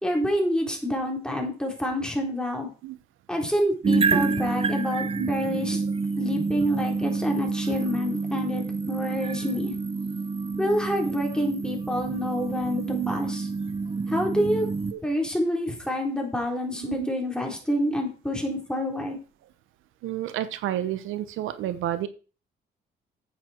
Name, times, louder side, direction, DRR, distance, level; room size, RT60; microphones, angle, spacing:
voice 1, 0.0-2.7 3.3-5.8 6.2-9.8 10.6-13.5 14.1-14.7 15.0-19.2, equal, 5° left, 0 dB, 3.9 m, -27 dB
sound 1, 3.8-14.9, right 4 dB, 30° right, 0.7 m, -28 dB
voice 2, 12.8-13.2 14.9-15.0 16.8-17.1 20.0-22.1, right 12 dB, 90° right, 12 dB, 0.9 m, -30 dB
9.6 x 8.4 x 4.4 m, 0.36 s
cardioid pair, 90°, 20 cm